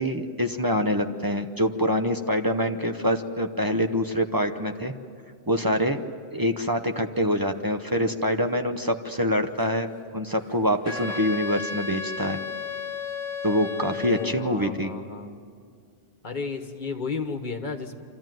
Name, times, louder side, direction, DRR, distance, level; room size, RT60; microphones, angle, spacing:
voice 1, 0.0-4.9 5.5-6.0 6.3-9.9 10.1-12.4 13.4-14.9, equal, 20° right, 5 dB, 0.7 m, -25 dB
sound 1, 9.4-14.1 14.4-16.4, right 2 dB, 80° right, 3.0 m, -47 dB
Wind instrument woodwind instrument, 10.9-14.6, left 5 dB, 85° left, 1.3 m, -34 dB
voice 2, 13.9-15.3 16.2-17.9, left 4 dB, 40° left, 6 dB, 1.4 m, -33 dB
25.5 x 14.0 x 9.2 m, 2.2 s
omnidirectional pair, 1.3 m